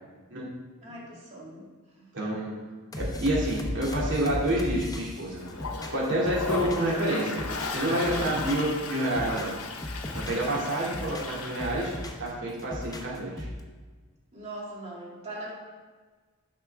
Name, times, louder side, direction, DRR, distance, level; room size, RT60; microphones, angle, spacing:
voice 1, 0.8-1.6 7.9-8.3 14.3-15.5, right 1 dB, 30° right, -5 dB, 2.5 m, -40 dB
voice 2, 2.1-2.6 3.0-5.4 5.9-7.4 7.7-9.5 10.1-11.9 12.2-13.5, right 1 dB, 60° right, -5 dB, 2.6 m, -28 dB
sound 1, 2.9-7.0 7.3-8.7 9.0-10.5 10.8-12.3 12.6-13.6, left 1 dB, 15° left, 0.8 m, -36 dB
Toilet flush, 5.4-12.2, left 4 dB, 80° left, 0.8 m, -36 dB
10.0 x 5.9 x 3.6 m, 1.4 s
head